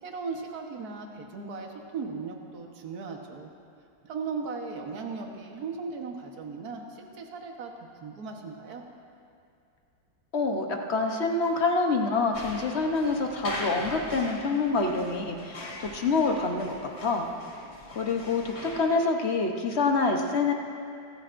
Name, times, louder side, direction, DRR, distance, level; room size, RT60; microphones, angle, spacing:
voice 1, 0.0-3.5 4.0-8.8, right 4 dB, 55° right, 2 dB, 1.6 m, -37 dB
voice 2, 10.3-16.7 17.0-17.3 17.9-20.5, left 3 dB, 45° left, 2 dB, 0.9 m, -26 dB
sound 1, 12.3-18.9, left 1 dB, 80° left, 3.6 m, -40 dB
26.5 x 13.5 x 2.6 m, 2.5 s
omnidirectional pair, 2.1 m